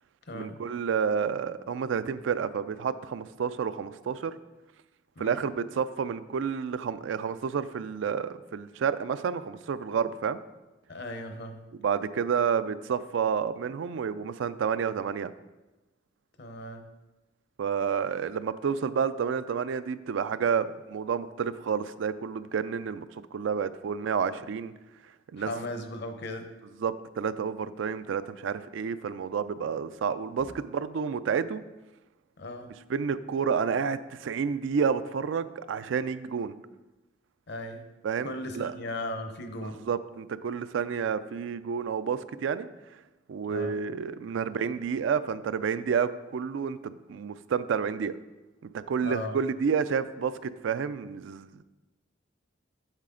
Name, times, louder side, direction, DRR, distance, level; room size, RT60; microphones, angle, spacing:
voice 1, 0.3-4.3 5.2-10.4 11.7-15.3 17.6-23.0 23.3-24.7 25.3-25.5 26.6-31.6 32.9-36.5 38.0-38.7 39.6-42.7 43.3-48.2 48.6-51.6, right 6 dB, 75° right, 14 dB, 0.4 m, -30 dB
voice 2, 5.2-5.5 10.9-11.6 16.4-16.8 25.5-26.5 32.4-32.7 37.5-37.8 38.2-39.8 43.5-43.8 49.0-49.3, left 1 dB, 60° left, 6 dB, 0.8 m, -37 dB
7.3 x 6.7 x 3.8 m, 1.1 s
head